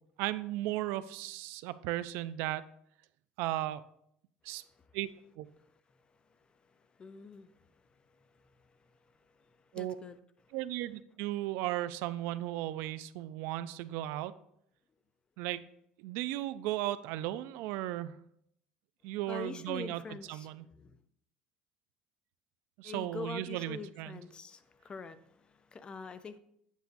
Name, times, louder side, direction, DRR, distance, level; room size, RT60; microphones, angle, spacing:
voice 1, 0.2-2.6 3.4-3.8 4.4-4.6 4.9-5.1 5.4-5.5 9.7-10.0 10.5-14.3 15.4-15.6 16.0-18.2 19.0-20.6 22.8-24.2, right 15 dB, 75° right, 14 dB, 0.3 m, -36 dB
voice 2, 7.0-7.5 8.3-8.5 9.4-10.2 19.3-21.0 22.8-26.4, left 4 dB, 25° left, 13 dB, 0.4 m, -45 dB
8.1 x 6.7 x 2.5 m, 0.73 s
cardioid pair, 130°, 4 cm